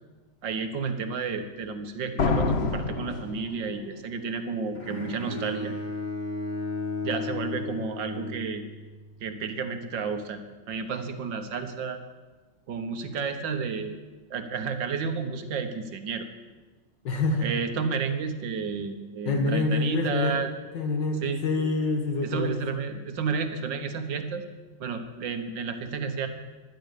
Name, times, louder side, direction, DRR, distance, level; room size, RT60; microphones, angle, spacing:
voice 1, 0.4-5.7 7.0-8.6 9.2-10.4 10.7-12.0 12.7-14.0 14.3-16.3 17.4-20.5 21.2-21.4 22.2-24.4 24.8-26.3, right 5 dB, 75° right, 8 dB, 1.9 m, -31 dB
sound 1, 2.2-4.0, left 4 dB, 45° left, 1.0 m, -27 dB
Bowed string instrument, 4.7-9.0, left 2 dB, 25° left, 1.9 m, -34 dB
voice 2, 17.0-17.5 19.3-22.6, left 3 dB, 70° left, 3 dB, 2.0 m, -27 dB
16.0 x 11.5 x 6.6 m, 1.2 s
omnidirectional pair, 2.0 m